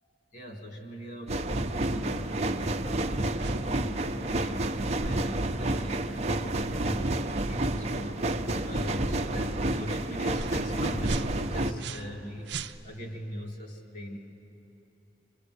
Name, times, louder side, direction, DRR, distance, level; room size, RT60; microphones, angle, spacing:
voice 1, 0.3-14.2, left 1 dB, 45° left, 2 dB, 2.9 m, -40 dB
sound 1, 1.3-11.7, right 1 dB, 40° right, 0.8 m, -30 dB
sound 2, 3.4-3.6 4.2-4.5 5.0-5.2 5.8-5.9 6.5-6.8 7.4-7.6 8.2-8.4 8.8-9.0 9.6-9.8 10.3-10.6 11.0-12.2 12.4-13.1, right 4 dB, 70° right, 0.6 m, -39 dB
25.5 x 24.5 x 8.0 m, 3.0 s
head